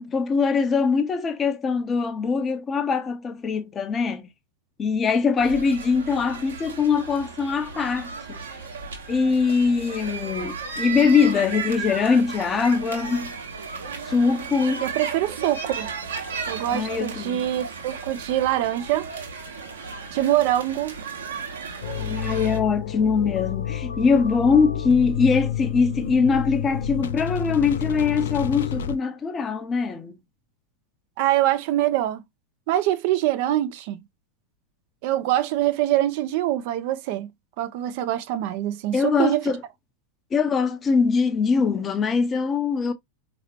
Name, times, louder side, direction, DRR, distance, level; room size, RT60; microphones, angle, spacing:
voice 1, 0.0-4.3 4.8-8.4 9.1-13.3 14.1-14.9 16.7-17.4 22.0-30.2 38.9-39.6 40.3-42.9, left 5 dB, 20° left, 0.7 m, -22 dB
sound 1, 5.4-22.6, right 5 dB, 65° right, 1.3 m, -35 dB
voice 2, 14.8-15.9 16.5-19.1 20.1-21.0 31.2-32.2 32.7-34.0 35.0-37.3 37.6-39.5, right 13 dB, 45° right, 0.5 m, -24 dB
sound 2, 21.8-29.0, left 9 dB, 60° left, 0.4 m, -29 dB
4.8 x 3.0 x 3.0 m
figure-of-eight pair, 90°, 0 cm